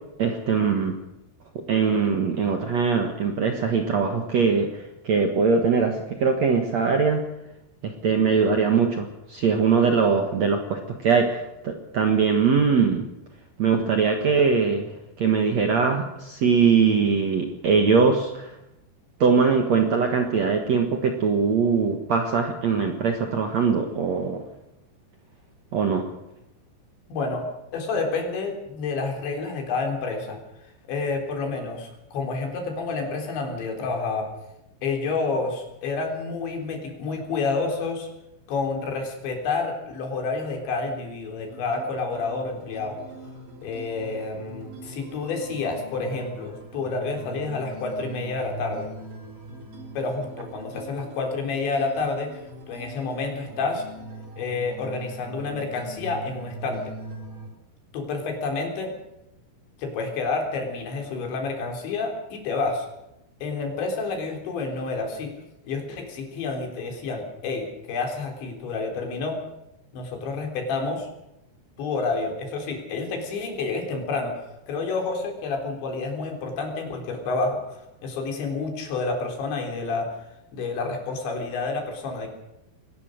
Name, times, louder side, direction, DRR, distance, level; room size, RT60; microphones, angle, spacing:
voice 1, 0.2-1.0 1.7-7.2 7.8-13.1 13.6-14.9 15.2-18.5 19.2-24.4 25.7-26.1, right 5 dB, 55° right, 4 dB, 2.0 m, -22 dB
voice 2, 27.1-27.5 27.7-30.4 30.9-34.3 34.8-38.1 38.5-43.0 43.6-48.9 50.0-52.4 52.7-53.9 54.4-56.9 57.9-58.9 59.8-62.9 63.4-65.3 65.7-69.4 69.9-71.1 71.8-74.4 74.7-80.1 80.5-82.3, left 3 dB, 80° left, 3 dB, 6.0 m, -29 dB
sound 1, 41.5-57.5, right 1 dB, 40° right, 4.9 m, -42 dB
22.5 x 18.5 x 6.5 m, 0.88 s
omnidirectional pair, 5.1 m